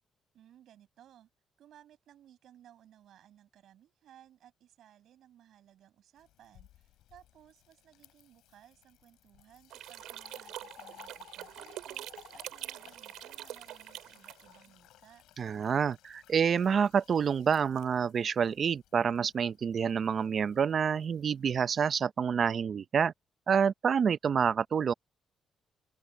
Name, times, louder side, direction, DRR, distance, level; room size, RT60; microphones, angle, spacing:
voice 1, 0.3-1.3 1.6-15.2, right 11 dB, 75° right, 8.0 m, -60 dB
Fill (with liquid), 6.2-22.0, left 14 dB, 90° left, 6.4 m, -59 dB
sound 1, 9.7-14.7, right 13 dB, 90° right, 3.0 m, -45 dB
voice 2, 15.4-23.1 23.5-24.9, right 7 dB, 50° right, 0.7 m, -28 dB
open air
cardioid pair, 90°, 0 cm